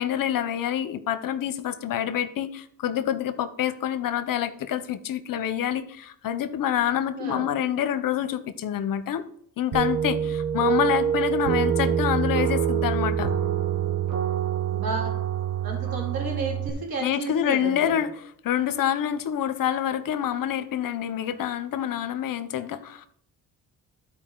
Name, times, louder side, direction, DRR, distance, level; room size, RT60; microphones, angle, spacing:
voice 1, 0.0-9.2 9.6-13.3 17.0-18.1 18.4-23.1, left 10 dB, 65° left, 11 dB, 0.8 m, -27 dB
voice 2, 7.2-7.5 10.5-10.8 14.7-15.2 15.6-18.0, right 3 dB, 85° right, 0 dB, 2.6 m, -33 dB
sound 1, 9.7-16.7, right 8 dB, 55° right, 1.0 m, -25 dB
12.5 x 4.6 x 3.8 m, 0.65 s
cardioid pair, 100°, 35 cm